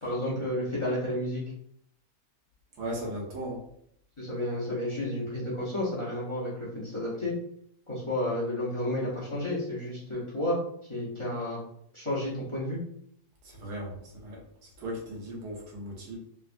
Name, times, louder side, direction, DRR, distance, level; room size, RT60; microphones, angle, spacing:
voice 1, 0.0-1.4 4.2-7.3 7.9-10.6 10.9-11.6 11.9-12.8, left 1 dB, 50° left, -8 dB, 0.3 m, -31 dB
voice 2, 2.8-3.6 13.4-14.4 14.8-16.2, right 1 dB, 85° right, -2 dB, 1.5 m, -37 dB
3.3 x 2.1 x 2.4 m, 0.69 s
omnidirectional pair, 1.7 m